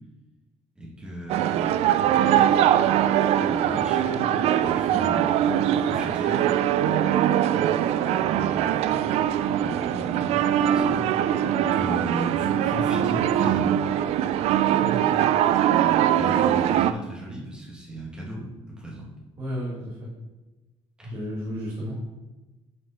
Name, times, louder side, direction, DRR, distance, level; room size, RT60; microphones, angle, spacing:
voice 1, 0.8-2.3 3.4-5.3 5.7-6.4 8.2-9.0 9.6-11.0 11.6-13.7 16.1-19.1 21.0-21.1, equal, 10° right, -5 dB, 2.0 m, -36 dB
sound 1, 1.3-16.9, right 10 dB, 65° right, 0.4 m, -22 dB
voice 2, 19.4-20.1 21.1-21.9, equal, 30° right, -7 dB, 2.0 m, -33 dB
6.6 x 5.4 x 5.7 m, 1.1 s
cardioid pair, 170°, 11 cm